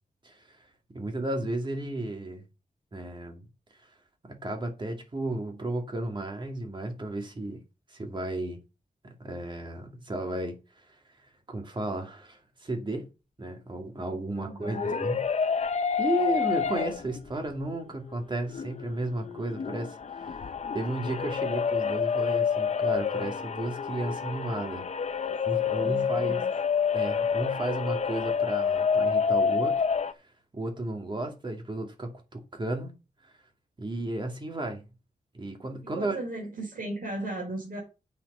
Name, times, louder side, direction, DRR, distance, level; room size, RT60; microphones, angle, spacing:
voice 1, 0.9-2.4 2.9-3.5 4.2-7.6 7.9-8.6 9.0-10.6 11.5-13.1 13.4-15.2 15.5-15.7 16.0-24.9 25.5-26.5 26.9-29.8 30.5-32.9 33.2-33.3 33.8-34.8 35.3-36.2, right 2 dB, 35° right, 2.4 m, -33 dB
voice 2, 14.3-15.0 25.2-25.4 25.7-26.5 35.8-37.8, right 2 dB, 80° right, 5.4 m, -37 dB
sound 1, 14.5-17.3 17.7-17.8 18.4-30.1, left 6 dB, 50° left, 0.7 m, -28 dB
8.2 x 6.4 x 5.6 m
wide cardioid pair, 135°, 14 cm